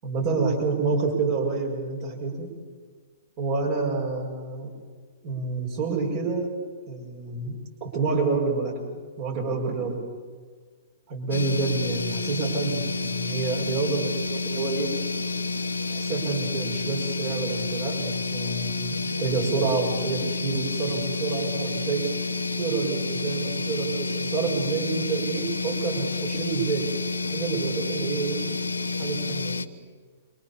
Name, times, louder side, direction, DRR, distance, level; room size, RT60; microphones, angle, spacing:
voice 1, 0.0-2.5 3.4-4.7 5.2-6.5 6.9-10.0 11.1-14.9 15.9-22.1 22.6-26.9 27.3-28.4 29.0-29.6, right 4 dB, 40° right, -1 dB, 6.2 m, -28 dB
sound 1, 11.3-29.7, left 3 dB, 80° left, 1.0 m, -29 dB
27.0 x 24.0 x 7.2 m, 1.5 s
figure-of-eight pair, 115°, 0 cm